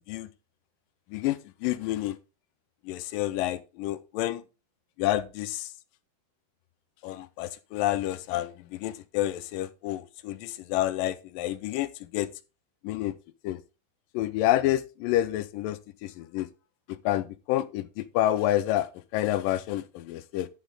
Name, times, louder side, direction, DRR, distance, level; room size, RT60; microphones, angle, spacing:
voice 1, 1.1-2.2 2.9-4.4 5.0-5.7 7.0-12.3 12.8-13.1 13.4-13.6 14.1-16.5 16.9-20.5, left 14 dB, 80° left, 2.0 m, -29 dB
11.5 x 7.4 x 3.8 m
omnidirectional pair, 4.5 m